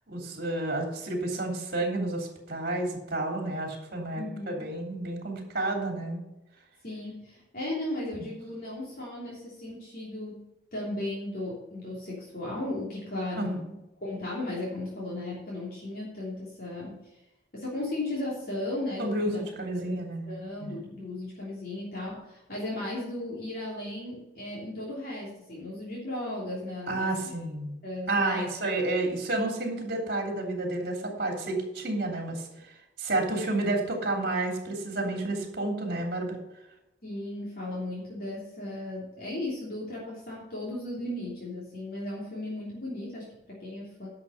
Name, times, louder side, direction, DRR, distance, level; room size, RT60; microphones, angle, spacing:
voice 1, 0.1-6.2 13.3-13.6 19.0-20.3 20.6-20.7 26.9-27.8 28.1-32.5 33.0-36.4, right 2 dB, 50° right, 1 dB, 3.0 m, -30 dB
voice 2, 4.1-4.7 6.8-10.4 10.7-13.7 14.0-17.1 17.5-19.4 19.7-20.0 20.3-27.2 27.8-28.7 37.0-44.1, left 1 dB, 50° left, -6 dB, 3.2 m, -36 dB
11.0 x 6.3 x 6.5 m, 0.93 s
head